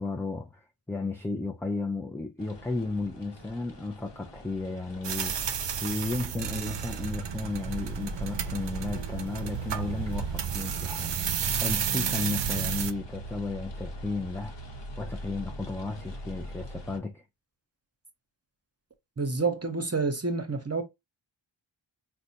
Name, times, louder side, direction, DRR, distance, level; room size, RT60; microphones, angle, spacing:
voice 1, 0.0-5.4 5.8-17.2, left 3 dB, 5° left, 0.3 m, -34 dB
sound 1, 2.4-17.0, right 1 dB, 60° left, 0.9 m, -43 dB
sound 2, 5.0-12.9, right 7 dB, 60° right, 0.5 m, -32 dB
voice 2, 19.2-20.8, right 4 dB, 30° right, 0.8 m, -28 dB
4.0 x 2.2 x 2.7 m
wide cardioid pair, 45°, 48 cm